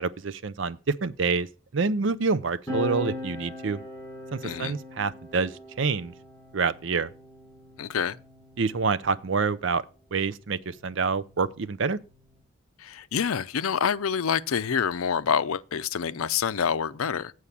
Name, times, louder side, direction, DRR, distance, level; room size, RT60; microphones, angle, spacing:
voice 1, 0.0-1.5 1.7-3.8 4.3-6.1 6.5-7.1 8.6-9.8 10.1-12.0, right 4 dB, 60° right, 0.5 m, -27 dB
sound 1, 2.7-9.6 10.6-12.4, left 2 dB, 15° left, 5.2 m, -40 dB
voice 2, 4.4-4.7 7.8-8.2 12.8-17.3, left 7 dB, 90° left, 0.5 m, -27 dB
8.3 x 4.7 x 7.1 m
head